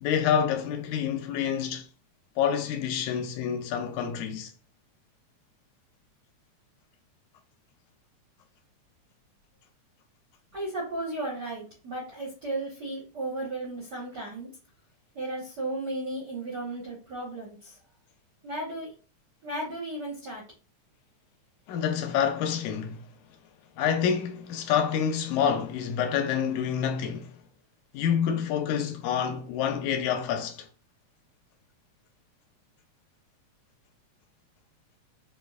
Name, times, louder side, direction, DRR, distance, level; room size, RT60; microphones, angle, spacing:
voice 1, 0.0-1.8 2.4-4.5 21.7-23.1 23.8-27.3 27.9-30.7, left 8 dB, 85° left, 1.9 m, -27 dB
voice 2, 10.5-14.5 15.1-17.8 18.4-18.9 19.4-20.4, right 2 dB, 70° right, 1.0 m, -34 dB
4.7 x 2.4 x 2.3 m
omnidirectional pair, 3.4 m